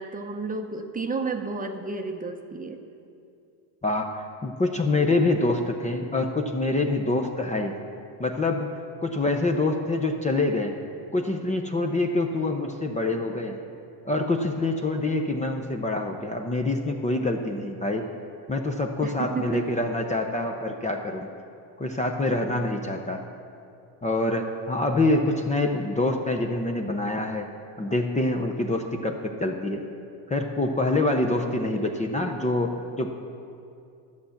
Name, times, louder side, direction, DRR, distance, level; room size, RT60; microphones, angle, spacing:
voice 1, 0.0-2.8 19.0-19.8 22.3-22.6, right 4 dB, 20° right, 4 dB, 0.8 m, -32 dB
voice 2, 3.8-4.2 4.4-7.8 8.2-8.7 9.0-10.7 11.1-13.6 14.0-18.0 18.5-21.3 21.8-23.2 24.0-27.5 27.8-29.8 30.3-33.1, left 2 dB, 15° left, 3 dB, 0.7 m, -26 dB
12.5 x 7.8 x 7.1 m, 2.5 s
cardioid pair, 125°, 47 cm